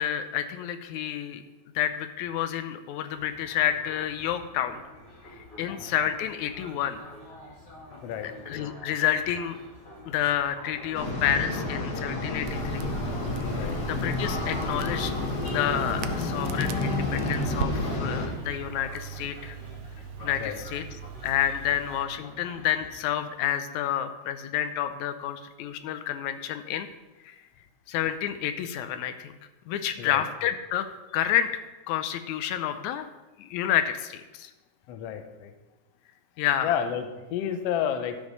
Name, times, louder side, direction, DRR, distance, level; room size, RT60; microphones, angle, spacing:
voice 1, 0.0-1.4 1.8-4.8 5.6-7.0 8.2-9.6 10.1-12.9 13.8-15.1 15.5-19.6 20.2-20.8 21.2-26.9 27.2-27.4 27.9-29.3 29.7-30.9 31.1-31.5 31.9-33.1 33.4-34.5 36.4-36.8, left 10 dB, 90° left, 10 dB, 2.0 m, -29 dB
sound 1, 3.1-23.0, left 1 dB, 15° left, 1.8 m, -47 dB
sound 2, 10.9-18.3, left 2 dB, 45° left, 1.5 m, -30 dB
Crackle, 12.4-22.0, right 8 dB, 85° right, 1.4 m, -40 dB
voice 2, 13.5-13.8 20.3-20.6 30.0-30.2 34.9-35.5 36.6-38.2, left 8 dB, 70° left, 8 dB, 1.7 m, -31 dB
12.5 x 5.3 x 5.3 m, 1.1 s
omnidirectional pair, 3.3 m